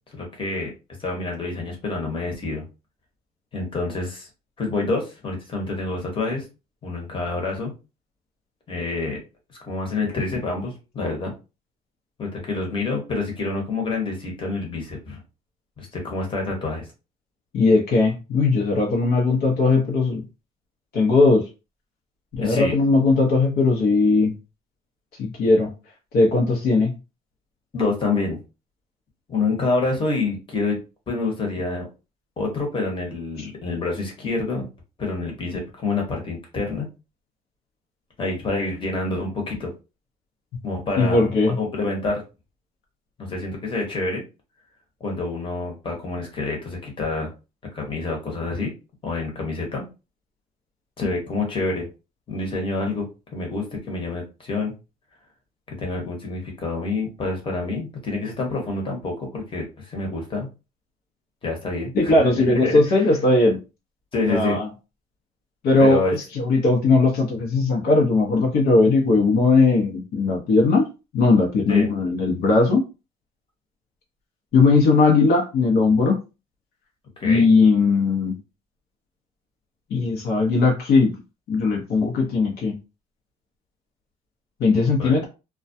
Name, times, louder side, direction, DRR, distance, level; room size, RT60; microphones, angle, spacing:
voice 1, 0.1-0.7 1.0-2.7 3.5-4.3 4.6-6.5 6.8-7.7 8.7-9.2 9.7-11.3 12.2-15.2 15.8-16.9 22.4-22.8 27.7-28.4 29.3-30.8 31.1-31.9 32.4-34.7 35.0-36.9 38.2-39.7 40.6-42.2 43.2-44.2 45.0-47.3 47.7-48.7 49.0-49.9 51.0-51.9 52.3-54.7 55.7-60.5 61.4-63.1 64.1-64.6 65.8-66.1 71.7-71.9 77.2-77.5 85.0-85.2, left 3 dB, 30° left, 0 dB, 1.0 m, -27 dB
voice 2, 17.5-20.2 20.9-21.4 22.3-24.3 25.2-25.7 26.1-26.9 41.0-41.6 61.9-63.6 64.3-64.7 65.6-70.9 71.1-72.8 74.5-76.2 77.2-78.4 79.9-81.1 81.5-82.8 84.6-85.3, left 3 dB, 70° left, 0 dB, 0.8 m, -18 dB
2.3 x 2.2 x 2.6 m, 0.29 s
cardioid pair, 110°, 17 cm